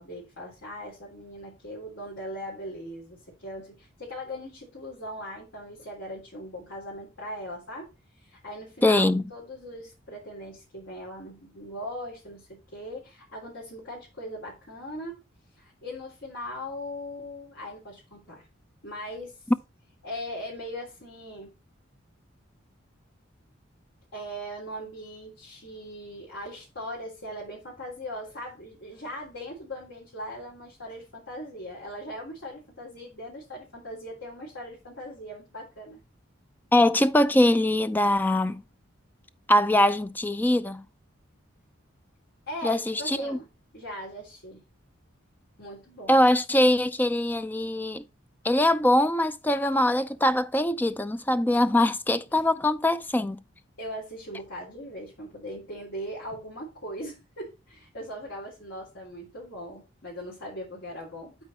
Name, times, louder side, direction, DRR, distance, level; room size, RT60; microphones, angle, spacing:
voice 1, 0.0-7.9 8.2-15.2 15.5-18.5 18.8-19.4 20.0-21.5 24.1-36.0 42.5-43.5 43.7-44.6 45.6-46.2 52.3-52.5 53.8-61.4, equal, 65° left, 3.6 m, -39 dB
voice 2, 8.8-9.2 36.7-38.6 39.5-40.8 42.6-43.4 46.1-48.0 48.4-53.4, left 1 dB, 10° left, 0.4 m, -22 dB
12.0 x 4.6 x 4.2 m
head